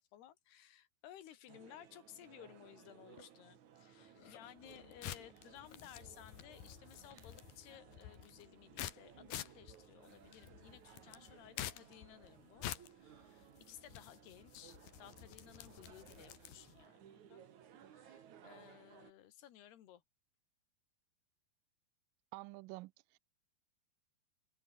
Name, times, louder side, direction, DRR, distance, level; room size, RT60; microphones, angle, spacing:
voice 1, 0.0-17.5 17.8-20.0, left 12 dB, 85° left, 4.0 m, -58 dB
sound 1, 1.5-19.1, right 9 dB, 55° right, 3.0 m, -61 dB
sound 2, 4.6-16.8, left 12 dB, 65° left, 3.1 m, -50 dB
voice 2, 22.3-23.2, right 22 dB, 90° right, 2.0 m, -49 dB
omnidirectional pair, 4.5 m